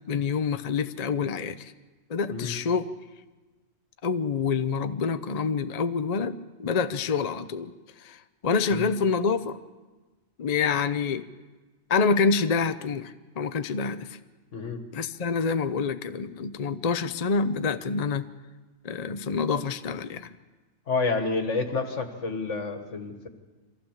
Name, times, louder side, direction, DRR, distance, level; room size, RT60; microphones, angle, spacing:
voice 1, 0.1-1.7 2.1-2.8 4.0-7.7 8.0-9.6 10.4-11.3 11.9-14.2 14.9-18.2 18.8-20.3, left 5 dB, 40° left, 11 dB, 0.6 m, -27 dB
voice 2, 20.9-23.3, left 4 dB, 65° left, 6 dB, 1.9 m, -29 dB
24.0 x 15.0 x 7.3 m, 1.3 s
omnidirectional pair, 1.4 m